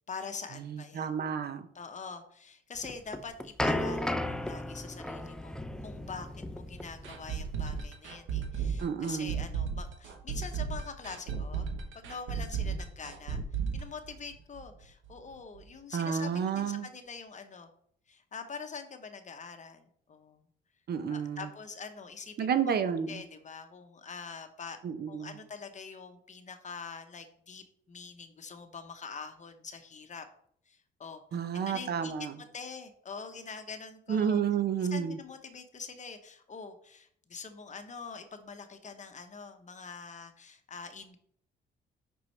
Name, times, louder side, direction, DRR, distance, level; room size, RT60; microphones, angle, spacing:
voice 1, 0.1-1.1 1.7-11.7 11.9-13.4 13.7-17.7 18.1-20.5 21.1-22.6 23.1-24.8 25.1-30.3 30.7-31.2 31.7-32.1 32.4-34.4 34.8-41.2, left 5 dB, 35° left, 7 dB, 0.9 m, -44 dB
voice 2, 0.6-1.6 8.8-9.4 15.9-16.9 20.9-21.5 22.4-23.2 24.8-25.4 31.3-32.4 34.1-35.2, right 7 dB, 55° right, 10 dB, 0.7 m, -31 dB
sound 1, 2.8-7.8, left 1 dB, 5° left, 0.5 m, -35 dB
sound 2, 7.0-14.8 15.0-15.1 15.5-15.6, right 6 dB, 80° right, 1.1 m, -34 dB
5.8 x 5.5 x 3.3 m, 0.64 s
cardioid pair, 90°, 20 cm